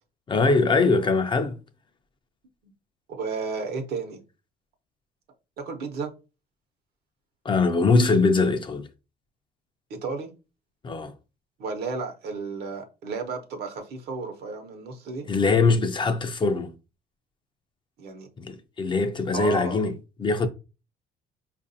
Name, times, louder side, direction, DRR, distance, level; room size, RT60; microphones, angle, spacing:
voice 1, 0.3-1.6 7.4-8.9 10.8-11.1 15.3-16.7 18.4-19.9 20.2-20.5, left 3 dB, 30° left, 0.5 m, -22 dB
voice 2, 3.1-4.2 5.6-6.1 9.9-10.3 11.6-15.3 18.0-18.3 19.3-19.8, right 4 dB, 70° right, 0.9 m, -33 dB
4.7 x 2.5 x 2.6 m
cardioid pair, 110°, 17 cm